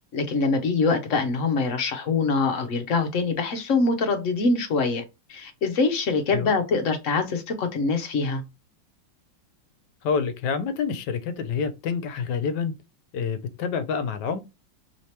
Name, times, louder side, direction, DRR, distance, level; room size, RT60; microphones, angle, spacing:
voice 1, 0.1-5.0 5.3-8.4, left 4 dB, 60° left, 0.9 m, -24 dB
voice 2, 10.0-12.7 13.1-14.4, left 6 dB, 75° left, 1.2 m, -27 dB
3.2 x 2.8 x 3.2 m
omnidirectional pair, 1.9 m